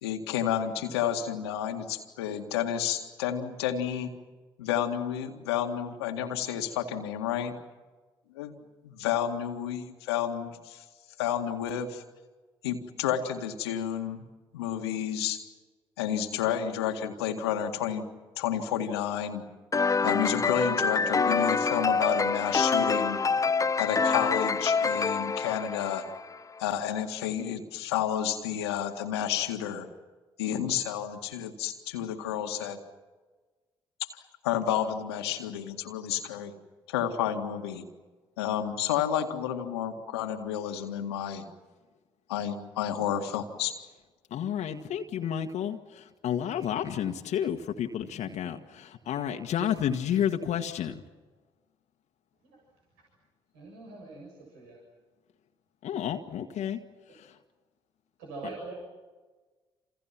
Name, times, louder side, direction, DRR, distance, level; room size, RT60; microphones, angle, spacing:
voice 1, 0.0-4.1 4.6-7.6 8.4-10.8 11.2-12.0 12.6-14.3 14.5-15.4 16.0-18.1 18.4-19.5 20.0-23.2 23.8-26.0 26.6-29.9 30.4-32.8 34.0-34.1 34.4-36.5 36.9-37.9 38.4-41.4 42.3-43.8, left 9 dB, 80° left, 5 dB, 2.0 m, -30 dB
sound 1, 19.7-26.4, left 4 dB, 25° left, 0.7 m, -26 dB
voice 2, 44.3-45.8 46.2-50.9 55.8-56.8, left 9 dB, 60° left, 4 dB, 1.7 m, -30 dB
voice 3, 53.5-54.8 56.3-56.6 57.1-57.2 58.2-58.7, right 3 dB, 75° right, -1 dB, 7.1 m, -43 dB
28.5 x 28.5 x 5.9 m, 1.3 s
hypercardioid pair, 45°, 13 cm